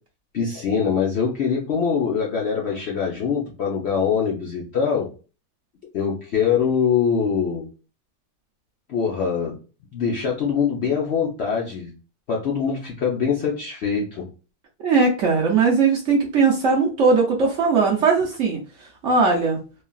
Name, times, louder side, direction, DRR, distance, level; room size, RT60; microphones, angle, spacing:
voice 1, 0.3-5.1 5.9-7.6 8.9-9.6 9.9-11.9 12.3-14.3, left 6 dB, 70° left, -3 dB, 0.6 m, -23 dB
voice 2, 14.8-18.6 19.0-19.6, right 4 dB, 65° right, -1 dB, 0.7 m, -19 dB
3.2 x 2.3 x 2.3 m, 0.35 s
omnidirectional pair, 1.8 m